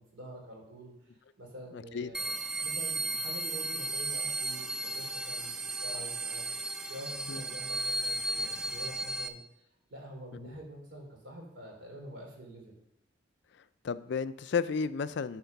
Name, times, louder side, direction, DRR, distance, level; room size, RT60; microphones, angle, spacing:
voice 1, 0.0-2.3 2.6-6.4 6.9-9.4 9.9-12.8, right 1 dB, 75° right, 0 dB, 3.1 m, -47 dB
voice 2, 1.7-2.1 7.3-7.4 10.4-10.5 13.8-15.4, left 5 dB, 65° left, 14 dB, 0.4 m, -32 dB
sound 1, 2.1-9.3, right 2 dB, 5° right, 0.4 m, -35 dB
10.5 x 4.4 x 5.8 m, 0.83 s
head